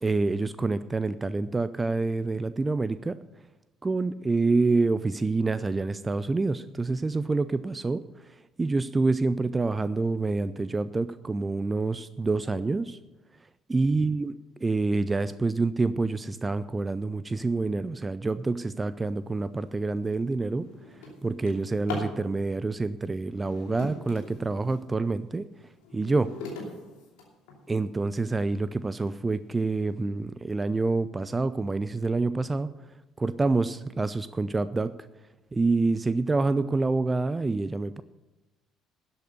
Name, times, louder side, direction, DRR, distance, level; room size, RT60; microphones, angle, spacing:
voice 1, 0.0-3.2 3.8-8.0 8.6-13.0 13.7-14.3 14.6-20.7 21.2-25.4 25.9-26.3 27.7-32.7 33.2-34.9 35.5-38.0, right 3 dB, 20° right, 15 dB, 0.5 m, -27 dB
Drawer open or close, 19.5-19.7 20.2-22.2 23.3-24.9 25.4-27.8 28.5-28.6 29.1-29.2 29.5-29.9, left 3 dB, 70° left, 2.7 m, -41 dB
12.5 x 8.4 x 6.6 m, 1.0 s
figure-of-eight pair, 50°, 0 cm